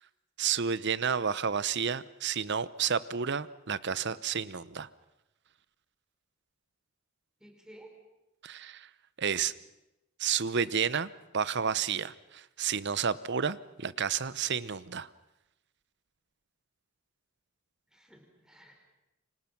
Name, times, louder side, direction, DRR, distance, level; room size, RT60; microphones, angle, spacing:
voice 1, 0.4-4.9 8.4-8.9 9.2-9.5 10.2-15.1, right 7 dB, 55° right, 17 dB, 0.8 m, -31 dB
voice 2, 7.4-7.9 17.9-18.7, right 1 dB, 5° right, 2 dB, 5.0 m, -54 dB
28.5 x 25.5 x 6.0 m, 0.94 s
head